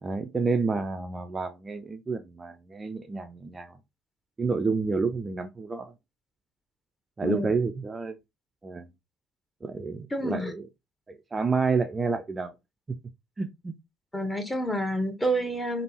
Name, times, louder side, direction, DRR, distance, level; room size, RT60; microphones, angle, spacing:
voice 1, 0.0-3.8 4.4-5.9 7.2-8.2 8.6-8.9 9.6-10.6 11.1-12.5 13.4-13.7, right 4 dB, 25° right, 0.3 m, -29 dB
voice 2, 10.1-10.5 14.1-15.8, equal, 15° left, 0.9 m, -28 dB
3.3 x 2.0 x 2.8 m
figure-of-eight pair, 55°, 0 cm